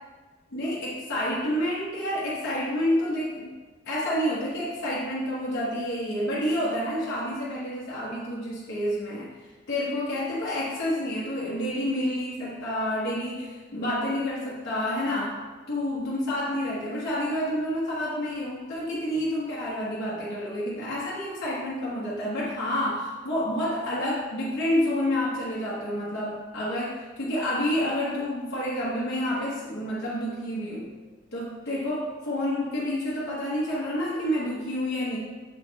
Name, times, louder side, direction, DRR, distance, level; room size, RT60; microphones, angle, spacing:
voice 1, 0.5-3.6 3.8-9.3 9.7-15.4 15.7-30.9 31.3-35.2, left 1 dB, 55° left, -9 dB, 1.2 m, -29 dB
7.1 x 4.1 x 4.1 m, 1.4 s
head